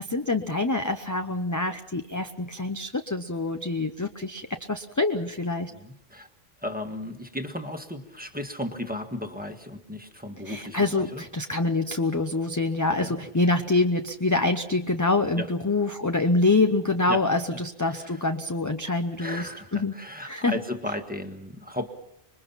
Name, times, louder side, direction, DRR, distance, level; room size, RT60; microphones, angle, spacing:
voice 1, 0.0-5.7 10.4-19.9 20.2-20.6, left 2 dB, 20° left, 6 dB, 0.7 m, -26 dB
voice 2, 5.7-6.3 6.6-11.2 12.9-13.1 15.4-15.5 17.1-17.2 17.5-18.2 19.2-21.9, left 1 dB, 10° right, 5 dB, 1.6 m, -35 dB
26.0 x 22.0 x 5.7 m, 0.80 s
omnidirectional pair, 1.1 m